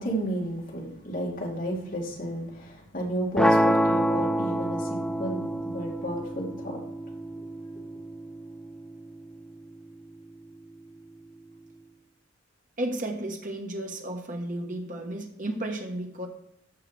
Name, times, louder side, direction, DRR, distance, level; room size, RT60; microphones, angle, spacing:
voice 1, 0.0-5.5 5.7-6.8, equal, 45° left, -2 dB, 2.6 m, -32 dB
sound 1, 3.4-9.4, equal, 5° left, 0.3 m, -27 dB
voice 2, 12.8-16.3, right 1 dB, 40° right, 3 dB, 1.4 m, -33 dB
14.0 x 5.8 x 3.4 m, 0.80 s
head